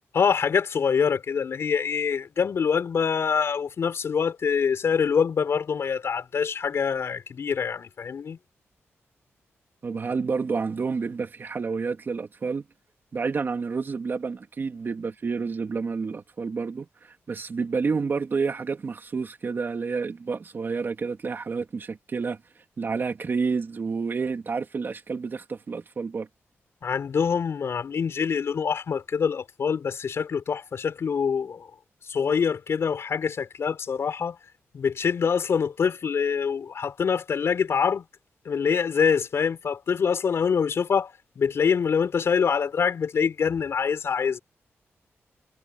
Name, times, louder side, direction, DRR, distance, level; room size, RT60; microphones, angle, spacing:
voice 1, 0.1-8.4 26.8-31.7 32.1-34.4 34.7-38.0 38.5-44.4, left 6 dB, 65° left, 5.5 m, -25 dB
voice 2, 9.8-12.6 13.1-22.4 22.8-26.3, right 5 dB, 45° right, 3.1 m, -29 dB
wide cardioid pair, 105°, 5 cm